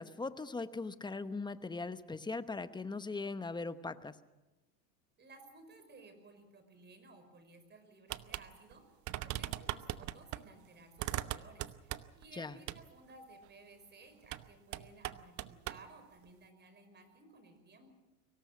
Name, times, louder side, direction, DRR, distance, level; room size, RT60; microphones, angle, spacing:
voice 1, 0.0-4.1 12.4-12.5, left 3 dB, 10° left, 12 dB, 0.9 m, -40 dB
voice 2, 5.2-8.8 9.2-17.9, right 3 dB, 25° right, 8 dB, 5.3 m, -58 dB
sound 1, 8.1-8.5 8.7-8.8 9.1-10.4 11.0-12.2 12.7-12.8 14.2-14.5 14.7-15.8, right 15 dB, 45° right, 1.0 m, -39 dB
24.0 x 18.0 x 7.5 m, 1.1 s
supercardioid pair, 110°, 42 cm